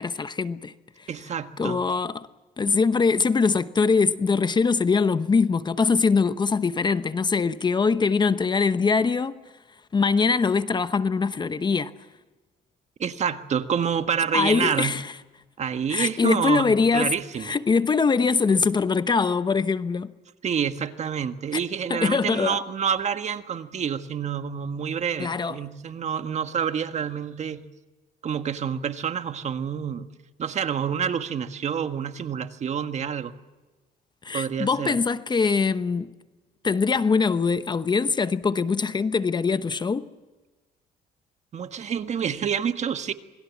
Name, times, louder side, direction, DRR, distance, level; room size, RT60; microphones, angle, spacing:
voice 1, 0.0-1.1 1.6-2.3 2.6-9.4 9.9-11.9 14.3-15.1 15.9-17.1 17.4-20.1 21.5-21.6 21.9-22.6 25.2-25.6 34.2-36.1 36.6-40.1, left 5 dB, 25° left, 0.9 m, -23 dB
voice 2, 1.1-1.8 13.0-14.9 15.6-17.6 20.4-27.6 28.2-30.1 30.4-33.3 34.3-34.9 41.5-43.1, right 7 dB, 40° right, 1.6 m, -28 dB
27.5 x 21.5 x 7.4 m
cardioid pair, 110°, 17 cm